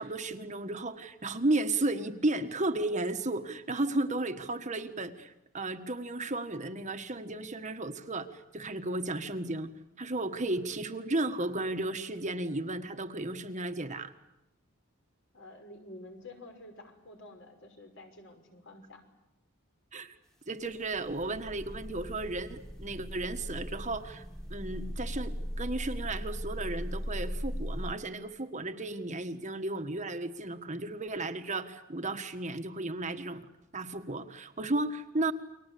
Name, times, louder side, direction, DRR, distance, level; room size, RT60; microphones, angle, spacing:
voice 1, 0.0-9.7 10.0-14.1 19.9-20.2 20.5-24.2 24.5-33.5 33.7-35.3, right 2 dB, 35° right, 7 dB, 1.5 m, -34 dB
voice 2, 15.3-19.0, left 2 dB, 60° left, 4 dB, 5.7 m, -49 dB
sound 1, 20.6-27.9, equal, ahead, 2.1 m, -38 dB
30.0 x 23.0 x 8.5 m, 0.87 s
head